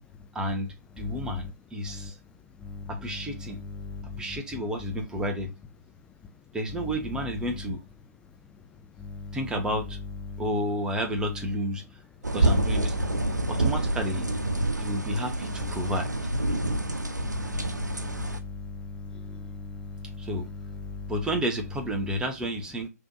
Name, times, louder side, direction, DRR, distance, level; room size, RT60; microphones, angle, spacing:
voice 1, 0.3-2.2 2.9-3.6 4.2-5.5 6.5-7.8 9.3-10.0 10.4-11.8 12.3-13.0 13.5-14.2 14.8-16.1 20.2-20.5 21.1-22.9, equal, 10° right, 1.1 m, -31 dB
voice 2, 3.8-4.4 9.0-9.4 10.3-10.4 13.1-13.4 16.5-16.9 17.2-20.3 20.8-21.1, left 4 dB, 10° left, 0.4 m, -39 dB
sound 1, 12.2-18.4, right 2 dB, 90° right, 0.8 m, -27 dB
5.6 x 3.4 x 2.7 m
figure-of-eight pair, 130°, 9 cm